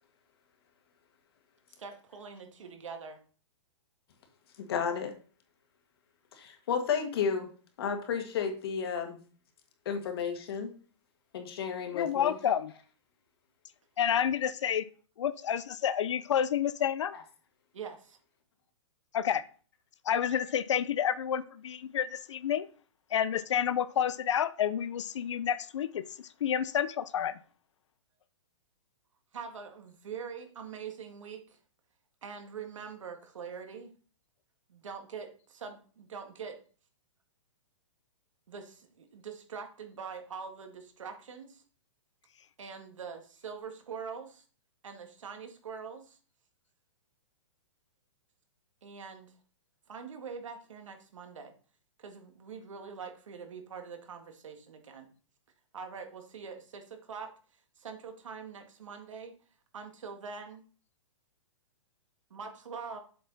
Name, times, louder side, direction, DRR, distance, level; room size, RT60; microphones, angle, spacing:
voice 1, 1.8-3.2 17.7-18.2 29.3-31.6 32.2-33.9 34.7-36.6 38.5-41.6 42.6-44.4 44.8-46.2 48.8-49.3 49.9-51.5 52.0-55.1 55.7-57.3 57.8-59.3 59.7-60.6 62.3-63.0, right 6 dB, 80° right, 5 dB, 1.9 m, -43 dB
voice 2, 4.6-5.1 6.4-7.5 7.8-9.2 9.9-10.7 11.3-12.3, left 6 dB, 50° left, 5 dB, 1.7 m, -32 dB
voice 3, 11.9-12.7 14.0-14.9 15.2-17.1 19.1-19.4 20.1-22.7 23.1-26.1 26.4-27.3, left 9 dB, 70° left, 15 dB, 0.6 m, -29 dB
7.6 x 6.0 x 4.1 m, 0.40 s
hypercardioid pair, 165°, 16 cm